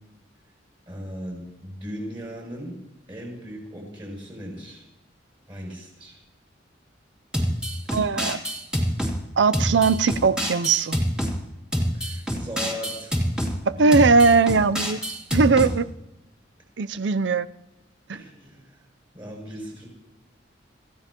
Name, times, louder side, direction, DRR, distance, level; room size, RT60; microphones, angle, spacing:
voice 1, 0.9-2.8 3.1-4.9 5.5-6.2 11.9-13.2 13.7-13.9 18.1-18.8 19.1-19.9, equal, 25° right, 7.1 m, -37 dB
sound 1, 7.3-9.1 9.5-11.3 11.7-13.5 13.9-15.7, equal, 5° right, 2.7 m, -26 dB
voice 2, 7.9-8.4 9.4-11.0 13.7-15.0 15.3-15.9 16.8-17.5 18.1-18.2, right 4 dB, 65° right, 0.5 m, -19 dB
27.0 x 15.5 x 3.0 m
head